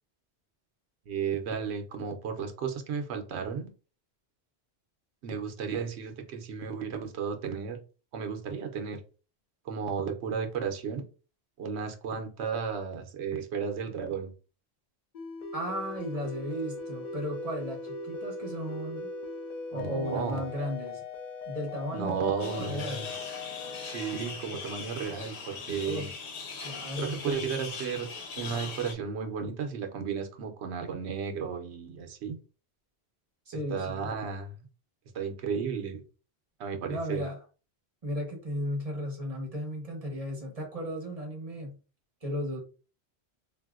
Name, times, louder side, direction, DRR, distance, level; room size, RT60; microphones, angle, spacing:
voice 1, 1.1-3.7 5.2-7.8 8.1-9.0 9.6-11.0 11.6-14.3 19.7-20.4 21.9-23.3 23.8-26.1 27.0-28.1 28.4-32.4 33.7-34.7 35.1-36.0 36.6-37.2, right 6 dB, 85° right, 0.9 m, -34 dB
sound 1, 15.1-25.5, left 3 dB, 55° left, 0.6 m, -40 dB
voice 2, 15.5-19.1 19.7-21.0 21.5-23.1 25.8-26.1 26.6-27.2 33.5-34.1 36.9-37.4 38.0-41.8 42.2-42.6, equal, 35° right, 1.0 m, -35 dB
sound 2, 22.4-28.9, left 5 dB, 90° left, 1.1 m, -40 dB
3.4 x 2.6 x 2.4 m
omnidirectional pair, 1.1 m